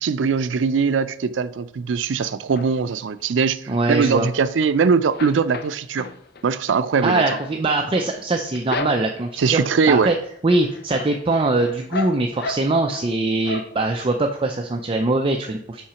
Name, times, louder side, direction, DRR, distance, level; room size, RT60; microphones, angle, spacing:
voice 1, 0.0-6.1 6.4-7.2 9.4-10.1, right 5 dB, 85° right, 0.4 m, -21 dB
sound 1, 2.2-3.0 3.4-4.7 5.0-9.4 9.9-10.3 10.6-13.1 13.4-14.1 14.5-14.6 14.9-15.0, left 3 dB, 60° left, 0.6 m, -35 dB
voice 2, 3.7-4.3 7.0-9.6 9.9-10.1 10.4-15.8, right 2 dB, 30° right, 0.5 m, -22 dB
5.8 x 4.9 x 5.7 m
head